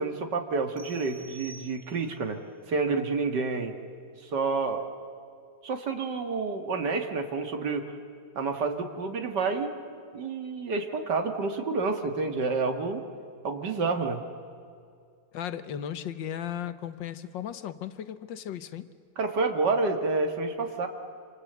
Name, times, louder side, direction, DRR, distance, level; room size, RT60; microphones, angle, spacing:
voice 1, 0.0-2.4 2.7-3.8 4.2-4.8 5.6-7.9 8.4-13.0 13.4-14.2 19.2-20.9, right 4 dB, 70° right, 6 dB, 2.5 m, -29 dB
sound 1, 0.8-2.3, right 4 dB, 30° right, 2.0 m, -49 dB
voice 2, 15.3-18.9, left 9 dB, 90° left, 12 dB, 1.7 m, -36 dB
27.0 x 26.0 x 8.1 m, 2.3 s
omnidirectional pair, 1.9 m